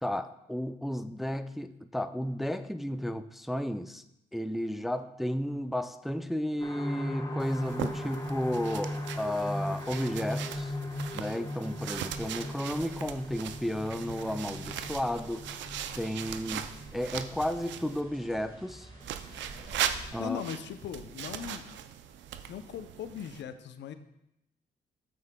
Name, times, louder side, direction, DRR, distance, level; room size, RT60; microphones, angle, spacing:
voice 1, 0.0-4.0 4.3-10.7 11.1-15.6 16.0-18.9 20.1-20.4, equal, ahead, 10 dB, 0.4 m, -33 dB
sound 1, 6.6-20.1 20.5-20.6 21.0-21.1, left 1 dB, 20° left, 1.1 m, -39 dB
sound 2, 7.4-18.0 19.0-23.4, right 10 dB, 80° right, 0.5 m, -39 dB
sound 3, 12.7-20.1, right 2 dB, 50° right, 2.6 m, -51 dB
voice 2, 20.2-21.8 22.5-23.9, left 9 dB, 75° left, 10 dB, 0.6 m, -39 dB
9.4 x 7.6 x 2.2 m, 0.83 s
supercardioid pair, 55°, 19 cm